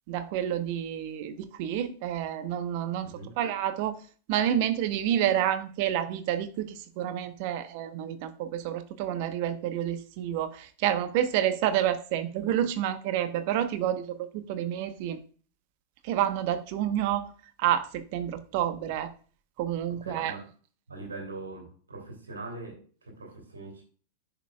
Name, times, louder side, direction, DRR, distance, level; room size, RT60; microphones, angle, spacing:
voice 1, 0.1-3.1 3.4-3.9 4.3-15.2 16.0-17.3 17.6-19.1 19.6-20.3, right 11 dB, 45° right, 1.0 m, -29 dB
voice 2, 3.0-3.4 19.9-20.5 20.9-23.8, right 3 dB, 75° right, 2.8 m, -42 dB
10.5 x 6.8 x 2.3 m
figure-of-eight pair, 90°, 0 cm